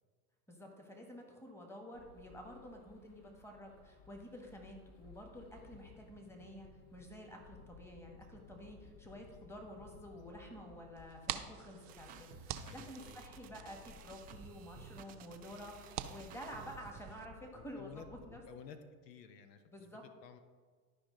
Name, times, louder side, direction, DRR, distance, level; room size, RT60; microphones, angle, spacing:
voice 1, 0.5-18.4 19.6-20.0, equal, 5° left, 2 dB, 1.4 m, -50 dB
sound 1, 1.9-18.5, left 4 dB, 35° left, 0.8 m, -59 dB
sound 2, 11.0-17.3, right 12 dB, 75° right, 0.7 m, -48 dB
sound 3, 11.9-17.2, right 8 dB, 20° right, 0.3 m, -55 dB
voice 2, 12.6-13.2 17.5-18.8 19.0-20.4, left 7 dB, 80° left, 9 dB, 0.9 m, -54 dB
11.5 x 5.0 x 3.8 m, 1.5 s
hypercardioid pair, 100°, 48 cm